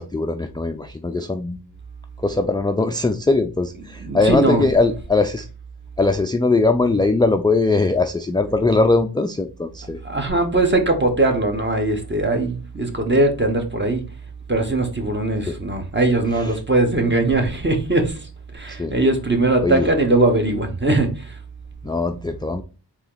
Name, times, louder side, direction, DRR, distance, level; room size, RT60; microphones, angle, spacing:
voice 1, 0.0-1.6 2.2-5.5 6.0-10.0 15.5-15.6 18.7-18.9 19.6-19.9 21.8-22.6, left 3 dB, 10° left, 0.3 m, -20 dB
voice 2, 3.8-4.7 10.0-14.0 14.5-21.4, right 2 dB, 25° right, 1.2 m, -20 dB
4.1 x 3.0 x 3.9 m
wide cardioid pair, 50°, 43 cm